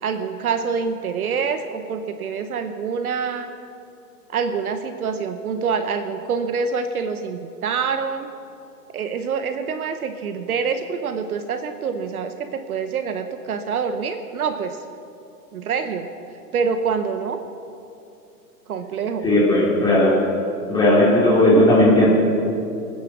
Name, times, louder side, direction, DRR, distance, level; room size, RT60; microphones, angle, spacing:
voice 1, 0.0-3.5 4.3-8.3 8.9-14.8 15.5-16.1 16.5-17.4 18.7-19.3, right 6 dB, 60° right, 8 dB, 1.0 m, -26 dB
voice 2, 19.2-20.1 20.7-22.1, left 1 dB, 10° left, -8 dB, 3.4 m, -15 dB
24.0 x 9.6 x 6.2 m, 2.7 s
hypercardioid pair, 175°, 49 cm